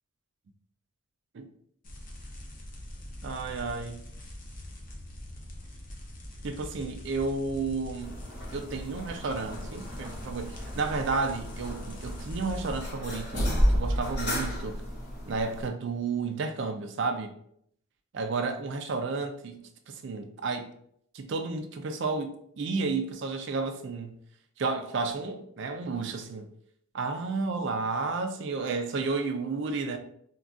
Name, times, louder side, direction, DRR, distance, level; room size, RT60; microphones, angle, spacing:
sound 1, 1.8-12.8, left 1 dB, 40° left, 0.5 m, -43 dB
voice 1, 3.2-4.1 6.4-8.1 8.5-14.8 15.3-17.3 18.1-19.6 19.9-20.7 21.1-24.2 24.6-26.5 26.9-30.0, right 4 dB, 55° right, 0.3 m, -32 dB
sound 2, 8.0-15.7, equal, 85° left, 1.4 m, -32 dB
3.6 x 2.3 x 2.4 m
head